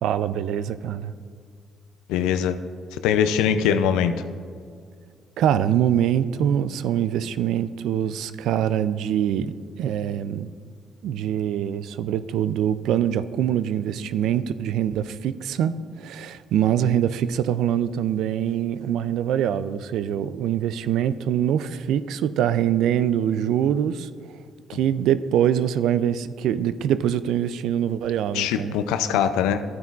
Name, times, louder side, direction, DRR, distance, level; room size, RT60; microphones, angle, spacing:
voice 1, 0.0-1.1 5.4-10.5 11.0-24.4 24.7-28.8, right 10 dB, 75° right, 14 dB, 0.3 m, -24 dB
voice 2, 2.1-2.6 2.9-4.1 28.3-29.6, left 8 dB, 90° left, 11 dB, 0.4 m, -22 dB
12.5 x 9.1 x 2.4 m, 2.1 s
supercardioid pair, 65°, 0 cm